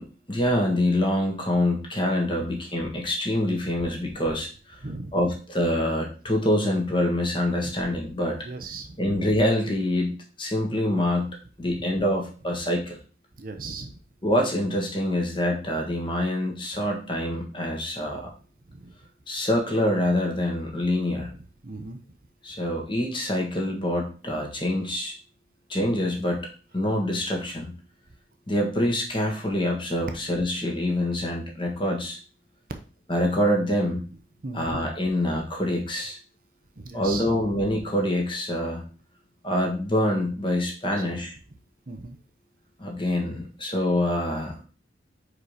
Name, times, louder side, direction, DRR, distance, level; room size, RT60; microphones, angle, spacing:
voice 1, 0.0-4.8 5.1-8.4 9.0-11.3 11.6-13.0 14.2-18.3 19.3-21.3 22.4-25.1 25.7-26.5 26.7-27.7 28.5-32.2 33.1-34.0 34.5-36.2 36.9-38.8 39.4-41.3 42.8-44.6, left 1 dB, 25° left, 1 dB, 1.6 m, -25 dB
voice 2, 4.8-5.1 7.6-7.7 8.4-9.1 11.7-11.8 13.4-13.9 18.2-18.3 18.7-18.9 21.4-22.0 34.4-34.8 36.8-37.4 40.9-41.0 41.9-42.2, right 3 dB, 50° right, 5 dB, 0.8 m, -38 dB
4.9 x 4.7 x 5.0 m, 0.37 s
head